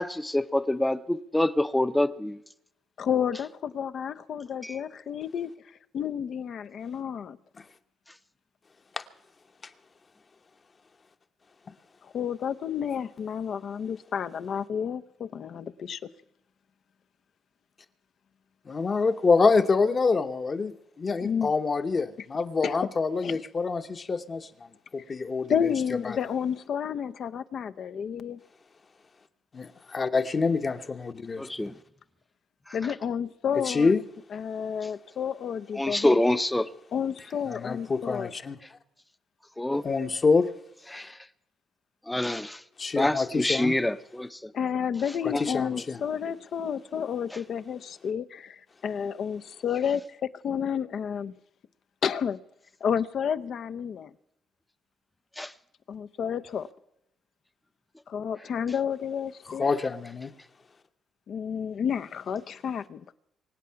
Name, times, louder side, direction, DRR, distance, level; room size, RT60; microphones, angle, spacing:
voice 1, 0.0-2.4 4.6-4.7 31.4-31.7 35.8-36.7 39.6-39.8 40.9-41.1 42.1-42.6 42.9-44.3 45.3-45.4 55.4-55.5, left 1 dB, 10° left, 0.7 m, -26 dB
voice 2, 3.0-5.5 5.9-7.4 12.0-16.0 21.2-21.5 22.6-22.8 23.2-23.4 25.5-28.4 32.7-33.9 34.3-36.2 36.9-38.3 44.5-51.3 52.0-52.4 52.8-54.1 55.9-56.7 58.1-59.7 61.3-63.1, left 8 dB, 60° left, 0.7 m, -31 dB
voice 3, 18.7-24.5 24.9-25.5 26.0-26.2 29.5-31.4 33.7-34.0 37.5-38.6 39.7-40.5 42.8-43.8 45.2-46.0 59.5-60.3, left 4 dB, 35° left, 1.0 m, -26 dB
24.5 x 8.4 x 5.8 m
cardioid pair, 90°, 0 cm